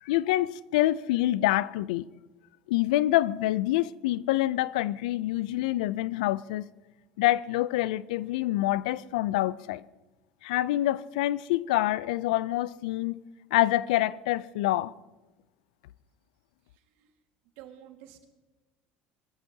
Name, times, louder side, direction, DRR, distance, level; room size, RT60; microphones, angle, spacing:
voice 1, 0.0-2.1 2.7-6.6 7.2-9.8 10.4-13.2 13.5-14.9, left 15 dB, 85° left, 0.4 m, -26 dB
voice 2, 16.7-17.1 17.6-18.3, right 11 dB, 75° right, 1.7 m, -50 dB
22.0 x 14.0 x 2.8 m
supercardioid pair, 95°, 4 cm